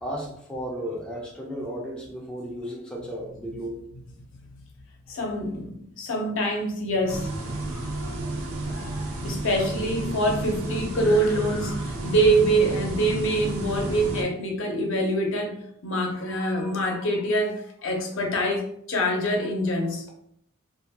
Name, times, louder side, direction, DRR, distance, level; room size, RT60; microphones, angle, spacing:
voice 1, 0.0-3.8 5.1-5.2, equal, 5° left, 0.3 m, -34 dB
voice 2, 5.1-7.3 7.7-8.3 8.6-15.6 15.8-20.0, right 1 dB, 65° left, 0.6 m, -25 dB
sound 1, 7.1-14.2, right 2 dB, 70° right, 0.5 m, -32 dB
2.6 x 2.1 x 2.7 m
head